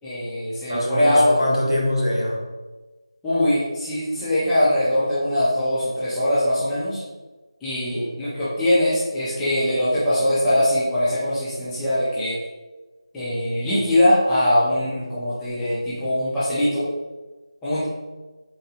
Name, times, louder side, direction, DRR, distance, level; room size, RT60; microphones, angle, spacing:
voice 1, 0.0-1.4 3.2-7.0 7.6-12.4 13.1-16.9 17.6-17.8, left 1 dB, 5° left, -13 dB, 0.6 m, -21 dB
voice 2, 0.7-2.4 7.9-8.2, left 1 dB, 70° left, -3 dB, 1.2 m, -24 dB
4.0 x 3.3 x 2.8 m, 1.2 s
figure-of-eight pair, 165°, 3 cm